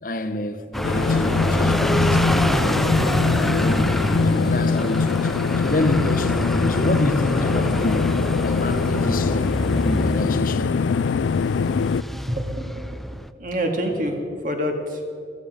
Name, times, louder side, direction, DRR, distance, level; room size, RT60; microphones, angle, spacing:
voice 1, 0.0-3.0 3.4-4.0 4.3-8.2 8.4-9.5 9.8-10.8, left 1 dB, 45° left, 0.9 m, -28 dB
sound 1, 0.7-13.3, equal, ahead, 0.3 m, -25 dB
sound 2, 0.8-12.0, left 5 dB, 85° left, 0.4 m, -23 dB
voice 2, 12.1-12.9 13.4-14.2 14.4-15.0, equal, 45° right, 2.0 m, -26 dB
14.5 x 14.5 x 6.5 m
head